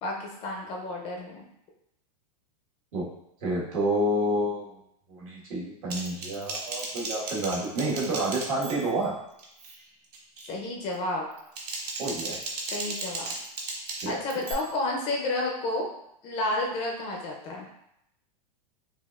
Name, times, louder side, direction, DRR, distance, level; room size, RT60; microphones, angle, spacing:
voice 1, 0.0-1.4 10.5-11.3 12.7-13.3 14.1-15.9 16.2-17.7, left 2 dB, 25° left, 0 dB, 0.5 m, -31 dB
voice 2, 3.4-4.8 5.1-9.1 12.0-12.4 14.0-14.2, right 1 dB, 55° right, -5 dB, 1.5 m, -29 dB
Typing, 5.9-9.1 9.4-9.8 10.1-10.5 11.3-14.5, right 3 dB, 75° right, 0.8 m, -36 dB
5.1 x 2.4 x 2.4 m, 0.77 s
supercardioid pair, 155°, 21 cm